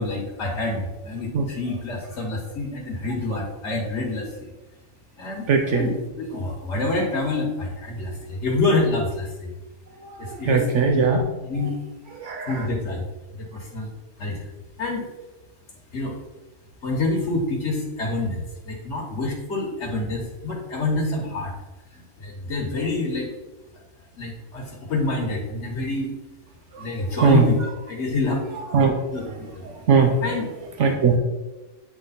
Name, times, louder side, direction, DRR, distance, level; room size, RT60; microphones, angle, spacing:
voice 1, 0.0-4.5 5.2-9.5 10.2-10.7 10.9-11.0 11.5-11.8 12.5-13.0 13.3-13.9 14.2-14.5 14.8-15.1 15.9-16.1 16.8-21.5 21.9-23.3 24.2-26.1 26.8-27.6 27.9-28.4 29.1-29.6 30.2-30.4, left 2 dB, 65° left, -2 dB, 1.4 m, -27 dB
voice 2, 5.5-5.9 10.1-11.2 11.6-11.7 12.2-12.7 26.7-27.5 28.7-28.9 29.3-29.4 29.6-30.2 30.8-31.2, right 5 dB, 70° right, 3 dB, 1.0 m, -20 dB
8.4 x 3.3 x 4.1 m, 1.1 s
omnidirectional pair, 1.3 m